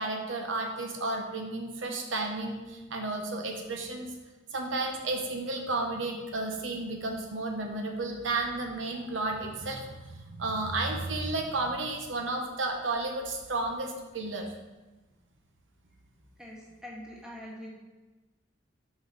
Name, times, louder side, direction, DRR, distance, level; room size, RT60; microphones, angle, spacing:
voice 1, 0.0-4.1 4.5-14.5, right 2 dB, 75° right, 2 dB, 1.0 m, -32 dB
voice 2, 16.4-17.7, equal, 5° right, -4 dB, 1.4 m, -44 dB
7.9 x 5.3 x 4.0 m, 1.2 s
head